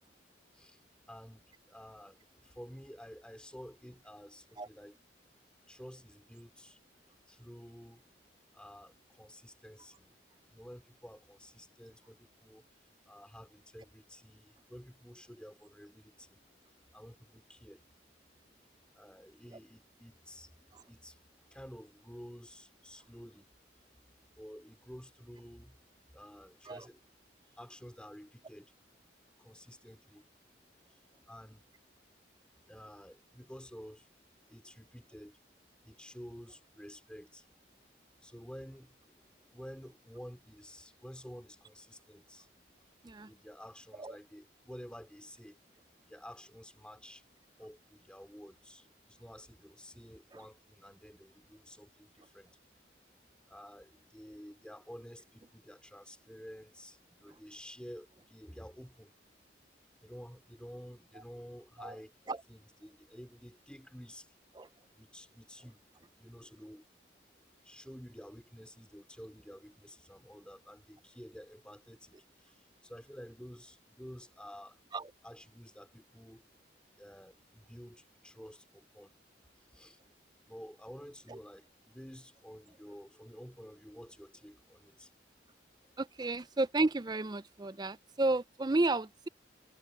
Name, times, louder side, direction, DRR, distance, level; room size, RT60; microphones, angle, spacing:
voice 1, 0.5-5.0 5.7-6.8 7.3-8.0 8.5-10.1 10.5-16.4 16.9-17.8 18.9-21.2 21.5-23.5 24.3-25.8 26.1-27.0 27.6-28.7 29.0-29.1 29.4-30.3 30.9-31.7 32.7-34.1 34.5-35.4 35.8-37.5 38.2-42.5 43.0-45.6 46.1-47.3 47.6-52.5 53.4-59.1 60.0-62.2 62.5-64.4 64.9-65.8 66.1-66.9 67.6-74.8 75.2-76.4 77.0-79.2 79.6-80.0 80.5-85.1, equal, 5° left, 3.5 m, -51 dB
voice 2, 86.0-89.3, right 2 dB, 20° right, 0.5 m, -32 dB
head